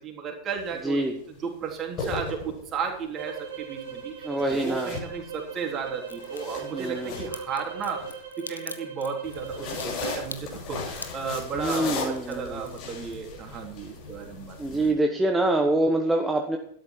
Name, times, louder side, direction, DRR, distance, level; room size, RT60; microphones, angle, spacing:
voice 1, 0.0-1.0 1.3-15.0, right 6 dB, 30° right, 1 dB, 3.4 m, -34 dB
sound 1, 0.6-0.8 1.7-2.9 4.4-5.6 6.0-8.1 9.2-14.9, left 4 dB, 40° left, 6.6 m, -37 dB
sound 2, 3.1-9.9, right 7 dB, 65° right, 3.7 m, -40 dB
voice 2, 4.2-4.9 6.7-7.1 11.5-12.6 14.6-16.6, right 1 dB, 10° right, 2 dB, 1.2 m, -25 dB
Crack, 6.0-6.4 7.3-13.6 13.9-14.6 14.8-14.9, left 3 dB, 80° left, 1.1 m, -42 dB
12.5 x 11.5 x 4.5 m, 0.66 s
figure-of-eight pair, 90°, 0 cm